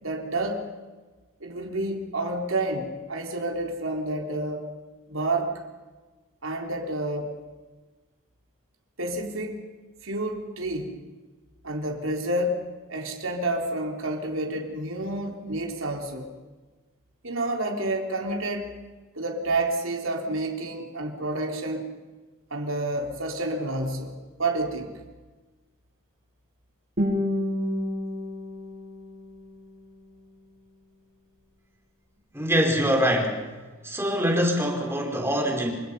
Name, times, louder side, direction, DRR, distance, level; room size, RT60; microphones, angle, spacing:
voice 1, 0.0-0.7 1.4-4.7 5.1-5.6 6.4-7.3 9.0-9.6 10.0-11.0 11.6-16.3 17.2-18.8 19.2-21.9 22.5-24.9, right 2 dB, 65° right, 3 dB, 3.8 m, -29 dB
Guitar, 27.0-30.0, left 1 dB, 45° right, 5.2 m, -30 dB
voice 2, 32.3-33.4 33.8-35.7, equal, 10° right, 1 dB, 4.9 m, -24 dB
28.0 x 25.0 x 5.6 m, 1.3 s
head